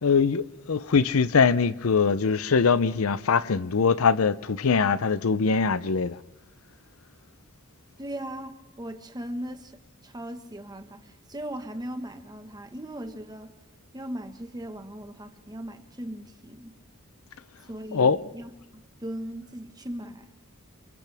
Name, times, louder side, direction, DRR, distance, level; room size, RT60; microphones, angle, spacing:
voice 1, 0.0-6.2 17.9-18.2, left 5 dB, 75° left, 0.6 m, -22 dB
voice 2, 8.0-13.5 13.9-16.7 17.7-20.3, right 1 dB, 20° right, 1.4 m, -38 dB
29.0 x 28.5 x 3.5 m
head